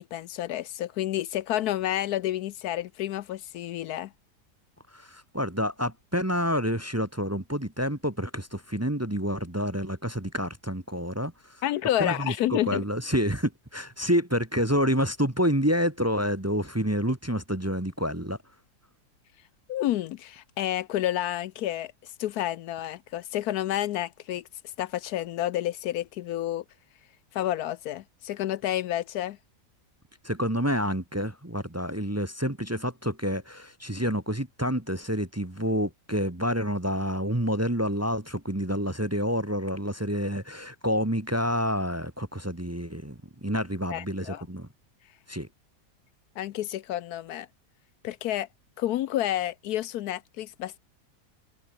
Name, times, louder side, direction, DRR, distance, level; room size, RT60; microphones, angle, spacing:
voice 1, 0.0-4.1 11.6-12.8 19.7-24.4 24.8-26.6 27.3-29.4 43.9-44.4 46.4-47.5 48.0-48.5 48.8-50.8, left 13 dB, 75° left, 1.1 m, -30 dB
voice 2, 4.9-11.3 12.0-18.4 30.2-44.7 45.3-45.5, equal, 10° right, 1.1 m, -28 dB
omnidirectional pair, 1.7 m